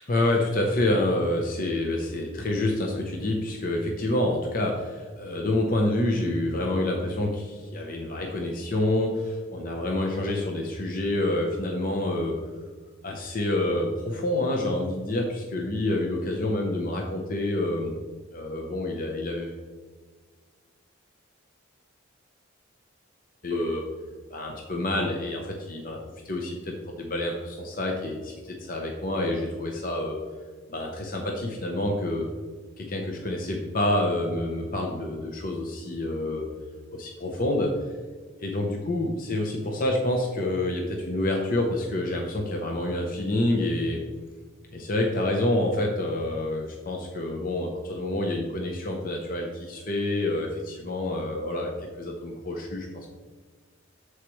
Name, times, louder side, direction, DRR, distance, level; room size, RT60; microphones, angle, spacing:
voice 1, 0.1-12.4 13.0-17.9 18.3-19.6 23.4-23.8 24.3-26.0 26.2-30.2 30.7-32.3 32.8-36.5 36.9-37.7 38.4-44.0 44.7-51.7 52.0-53.1, left 1 dB, 40° left, 1 dB, 0.8 m, -27 dB
13.0 x 4.8 x 3.1 m, 1.5 s
head